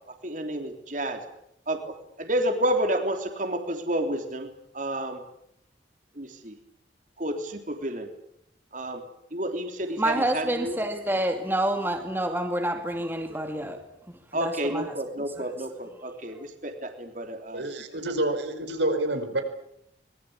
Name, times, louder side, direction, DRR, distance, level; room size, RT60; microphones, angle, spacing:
voice 1, 0.2-1.2 1.7-4.5 4.7-5.2 6.2-6.6 7.2-8.1 8.7-9.0 9.3-10.7 14.3-17.7, right 1 dB, 45° right, 5 dB, 3.5 m, -30 dB
voice 2, 10.0-13.8 14.3-15.0 15.4-15.5 16.4-16.5, right 1 dB, 10° right, 5 dB, 2.4 m, -28 dB
voice 3, 17.5-19.4, right 1 dB, 85° right, 6 dB, 5.2 m, -28 dB
25.0 x 21.5 x 8.8 m, 0.74 s
head